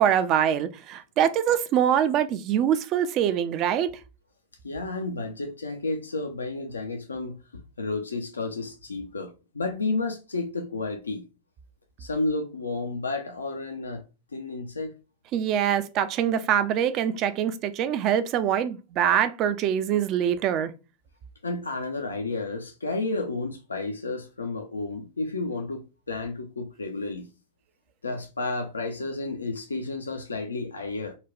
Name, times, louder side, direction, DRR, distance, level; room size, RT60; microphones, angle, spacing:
voice 1, 0.0-3.9 15.3-20.7, right 9 dB, 40° right, 0.4 m, -24 dB
voice 2, 4.6-11.3 12.0-14.1 14.3-14.9 21.4-27.3 28.0-31.2, left 3 dB, 75° left, 0.4 m, -31 dB
4.0 x 2.2 x 3.0 m
figure-of-eight pair, 90°, 0 cm